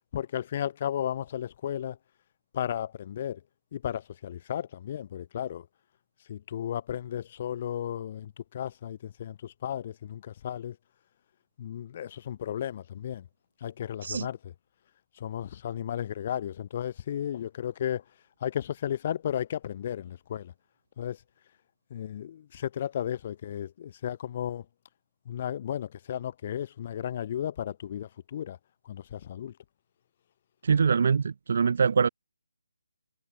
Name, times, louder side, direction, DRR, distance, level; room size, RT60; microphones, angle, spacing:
voice 1, 0.1-2.0 2.5-3.4 3.7-5.7 6.3-10.8 11.6-13.3 13.6-14.5 15.2-18.0 18.4-20.5 21.0-21.2 21.9-24.7 25.3-28.6 28.9-29.5, left 10 dB, 20° left, 1.8 m, -34 dB
voice 2, 30.6-32.1, right 6 dB, 35° right, 3.2 m, -23 dB
hypercardioid pair, 180°, 0 cm